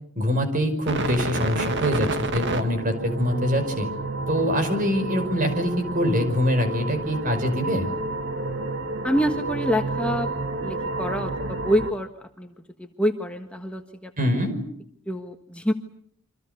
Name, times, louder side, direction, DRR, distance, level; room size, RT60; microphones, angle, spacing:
voice 1, 0.2-3.9 4.3-7.9 14.2-14.6, equal, 40° right, 8 dB, 5.5 m, -24 dB
sound 1, 0.9-11.9, right 2 dB, 55° right, 2.0 m, -30 dB
voice 2, 9.0-10.3 10.6-12.1 12.4-12.5 12.8-14.1 15.1-15.7, equal, 5° left, 4 dB, 1.4 m, -26 dB
28.0 x 25.0 x 6.9 m, 0.64 s
head